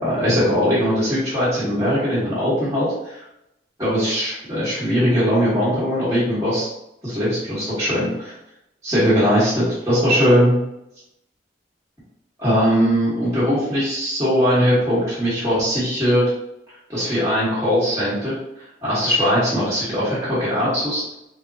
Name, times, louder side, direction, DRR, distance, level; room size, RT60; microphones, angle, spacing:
voice 1, 0.0-3.2 3.8-6.7 7.0-8.3 8.8-10.6 12.4-16.3 16.9-18.4 18.8-21.0, equal, 15° right, -11 dB, 1.4 m, -20 dB
3.6 x 3.4 x 2.8 m, 0.85 s
head